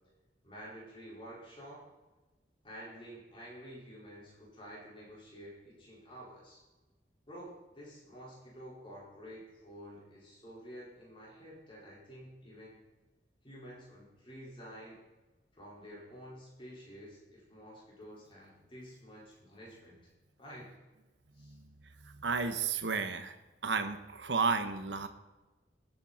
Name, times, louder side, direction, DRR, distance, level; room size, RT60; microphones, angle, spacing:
voice 1, 0.4-1.8 2.6-6.6 7.3-12.8 13.4-15.0 15.5-20.0 20.4-20.7 21.3-21.6, equal, 30° left, -6 dB, 4.8 m, -50 dB
voice 2, 22.0-23.3 23.6-25.1, right 5 dB, 85° right, 8 dB, 1.0 m, -32 dB
19.5 x 9.1 x 4.3 m, 1.1 s
head